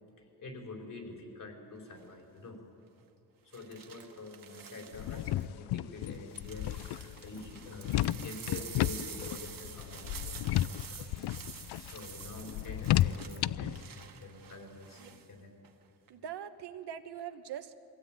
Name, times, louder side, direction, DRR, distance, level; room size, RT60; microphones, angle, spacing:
voice 1, 0.4-2.6 3.4-10.4 10.9-11.3 11.7-15.5, left 2 dB, 55° left, 1 dB, 4.9 m, -46 dB
sound 1, 1.9-2.2 3.5-5.4 6.0-15.3 15.6-16.1, right 7 dB, 60° right, 1.7 m, -48 dB
sound 2, 4.9-13.8, left 14 dB, 90° left, 0.5 m, -33 dB
voice 2, 16.1-17.8, right 9 dB, 85° right, 8 dB, 1.3 m, -42 dB
23.5 x 16.5 x 9.0 m, 2.6 s
cardioid pair, 115°, 39 cm